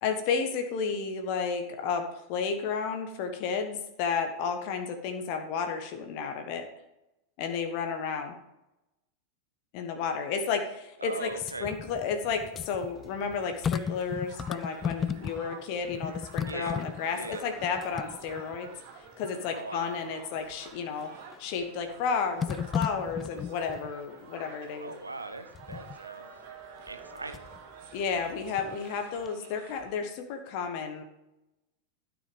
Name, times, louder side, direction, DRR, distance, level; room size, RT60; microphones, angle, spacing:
voice 1, 0.0-6.7 7.4-8.3 9.7-11.3 11.6-18.7 19.0-21.1 21.4-24.9 27.9-31.0, left 6 dB, 45° left, 5 dB, 1.3 m, -32 dB
voice 2, 11.0-11.8 16.4-16.8 17.1-17.5 19.5-20.0 24.8-26.3 26.8-27.4, right 2 dB, 80° right, 9 dB, 0.9 m, -40 dB
sound 1, 11.3-15.6 15.9-18.7 19.2-19.3 21.0-21.5 22.4-23.9 25.5-26.0 26.9-27.6 28.0-29.0 29.3-29.4, left 7 dB, 20° left, 0.3 m, -36 dB
Crowd, 12.6-30.0, right 6 dB, 50° right, 1.8 m, -50 dB
12.5 x 6.4 x 5.4 m, 0.90 s
figure-of-eight pair, 90°, 0 cm